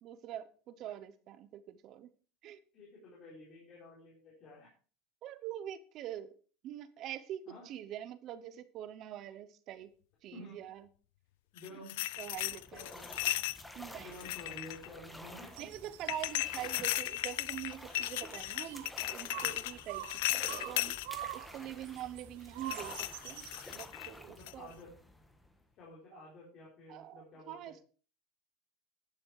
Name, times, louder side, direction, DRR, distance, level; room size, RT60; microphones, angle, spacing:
voice 1, 0.0-2.1 2.4-2.6 5.2-6.3 6.6-9.9 10.2-10.8 11.8-11.9 12.2-12.9 13.7-14.2 15.6-21.0 21.3-23.0 23.2-24.7 26.1-26.3 26.9-27.8, right 11 dB, 35° right, 13 dB, 0.8 m, -44 dB
voice 2, 2.7-4.7 7.5-7.7 10.3-10.6 11.5-12.0 12.5-13.3 13.5-15.5 19.4-19.6 24.2-24.9 25.8-27.7, left 1 dB, 35° left, -4 dB, 4.1 m, -52 dB
sound 1, 11.6-13.6 14.1-14.9 16.1-21.1 22.7-24.1 24.5-24.7, left 17 dB, 80° left, 0.5 m, -36 dB
sound 2, 12.0-25.7, left 1 dB, 5° left, 1.3 m, -51 dB
sound 3, 15.5-23.6, right 15 dB, 85° right, 0.6 m, -47 dB
11.5 x 8.9 x 4.8 m, 0.38 s
cardioid pair, 180°, 0 cm